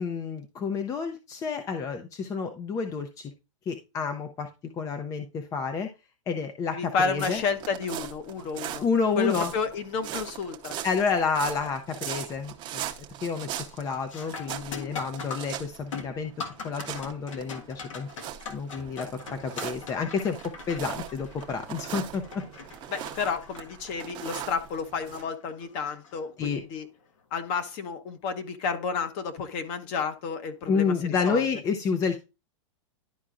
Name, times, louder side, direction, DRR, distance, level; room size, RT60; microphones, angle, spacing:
voice 1, 0.0-3.3 3.7-5.9 6.3-7.4 8.8-9.5 10.8-12.8 13.2-16.3 16.6-18.1 18.5-20.4 20.7-22.4 26.4-26.6 30.7-32.2, left 5 dB, 20° left, 0.6 m, -29 dB
voice 2, 6.7-8.8 9.2-10.8 22.9-26.9 27.3-31.5, left 5 dB, 40° left, 1.1 m, -31 dB
sound 1, 7.1-25.2, right 11 dB, 30° right, 0.9 m, -40 dB
sound 2, 11.6-12.0 12.4-12.8 13.1-26.7 29.2-29.3 30.1-30.3, left 5 dB, 80° left, 1.6 m, -43 dB
11.5 x 4.5 x 2.5 m
hypercardioid pair, 135°, 16 cm